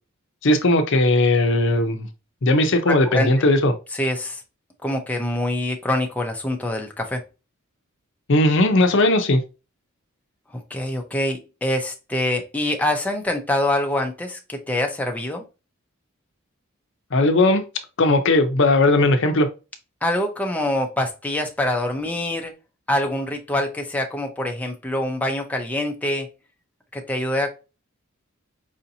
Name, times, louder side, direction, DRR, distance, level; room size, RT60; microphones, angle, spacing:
voice 1, 0.4-2.1 2.4-3.7 8.3-9.4 17.1-17.6 18.0-19.5, left 2 dB, 60° left, 7 dB, 0.6 m, -18 dB
voice 2, 2.9-3.5 3.9-4.4 4.8-7.2 10.5-15.4 20.0-22.5 22.9-26.3 26.9-27.5, left 1 dB, 5° left, 2 dB, 0.5 m, -25 dB
4.9 x 2.7 x 2.7 m, 0.29 s
head